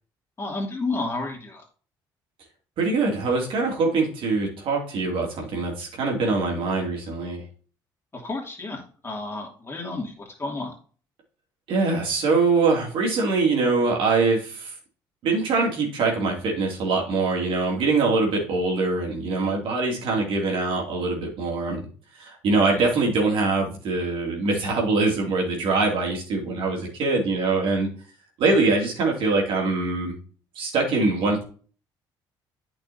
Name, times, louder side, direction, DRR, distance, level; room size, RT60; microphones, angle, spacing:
voice 1, 0.4-1.6 8.1-10.7 22.7-22.9, left 3 dB, 25° left, 0 dB, 2.7 m, -31 dB
voice 2, 2.8-7.4 11.7-14.7 15.2-21.9 22.2-27.9 28.4-30.2 30.6-31.4, right 3 dB, 65° right, 0 dB, 2.7 m, -23 dB
8.8 x 6.0 x 2.8 m, 0.40 s
supercardioid pair, 75°, 9 cm